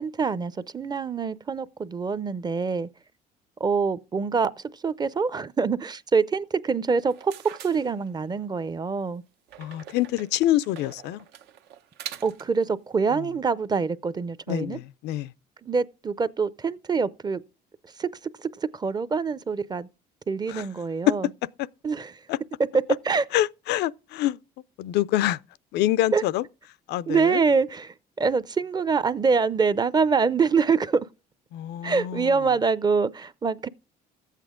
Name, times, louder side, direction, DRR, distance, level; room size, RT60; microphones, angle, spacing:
voice 1, 0.0-2.9 3.6-4.5 4.8-7.3 7.6-9.2 12.2-14.8 15.6-17.4 18.0-18.1 18.4-19.9 20.3-21.3 21.8-22.1 23.1-23.2 26.1-26.2 27.1-31.1 31.8-33.7, right 5 dB, 25° right, 0.5 m, -25 dB
sound 1, 6.9-8.5 9.5-12.6, right 10 dB, 85° right, 0.9 m, -44 dB
voice 2, 9.6-11.2 13.1-13.3 14.5-15.3 20.5-20.7 21.1-21.2 21.6-21.7 22.3-22.4 23.3-24.4 24.8-25.4 25.7-26.4 26.9-27.4 31.5-32.4, left 14 dB, 80° left, 0.5 m, -26 dB
13.5 x 8.3 x 3.6 m
cardioid pair, 110°, 17 cm